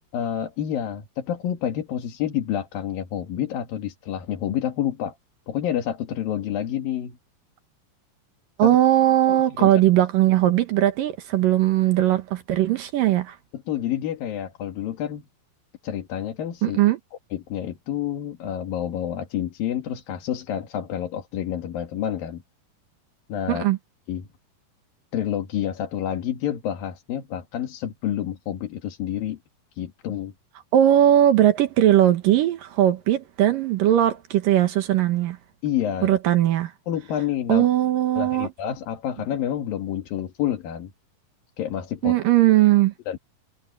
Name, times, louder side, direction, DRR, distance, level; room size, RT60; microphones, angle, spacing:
voice 1, 0.1-5.2 5.5-7.2 8.6-8.8 9.3-9.7 13.5-15.2 15.8-16.8 17.3-22.4 23.3-23.7 24.1-24.3 25.1-29.4 29.8-30.3 35.6-36.2 36.9-37.7 38.2-40.9 41.6-42.2 43.1-43.2, left 10 dB, 70° left, 3.5 m, -28 dB
voice 2, 8.6-13.4 16.6-17.0 23.5-23.8 30.7-35.4 36.0-36.7 37.5-38.5 42.0-42.9, right 12 dB, 70° right, 2.8 m, -19 dB
omnidirectional pair, 4.3 m